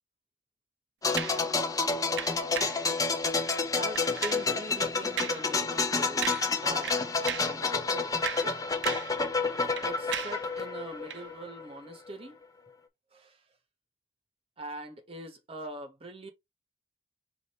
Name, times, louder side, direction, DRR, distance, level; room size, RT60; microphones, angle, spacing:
sound 1, 1.0-11.7 11.9-12.1, left 4 dB, 20° left, 0.6 m, -29 dB
sound 2, 1.2-1.5 2.2-2.8 3.4-3.6 4.0-4.5 5.2-5.5 5.8-5.9 6.2-6.6 6.8-7.6 8.0-9.2 9.5-10.5 11.1-11.2, right 8 dB, 85° right, 0.6 m, -36 dB
voice 1, 3.7-7.0 7.4-8.6 9.8-12.4 13.1-13.4 14.6-16.3, right 2 dB, 35° right, 1.0 m, -43 dB
5.0 x 2.6 x 4.1 m
head